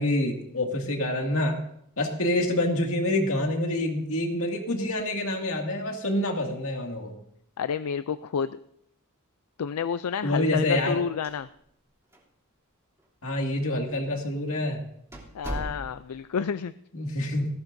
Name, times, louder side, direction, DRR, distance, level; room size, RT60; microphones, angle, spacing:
voice 1, 0.0-1.6 2.0-7.1 10.2-11.0 13.2-14.9 16.9-17.5, left 1 dB, 65° left, 2 dB, 2.3 m, -27 dB
voice 2, 7.6-8.6 9.6-11.5 15.3-16.7, left 7 dB, 85° left, 12 dB, 0.4 m, -29 dB
sound 1, 11.2-11.9 12.1-12.2 13.0-13.1 13.9-14.1 14.5-14.6 15.1-16.2, right 1 dB, 15° right, 3.1 m, -37 dB
19.5 x 16.5 x 2.7 m, 0.70 s
head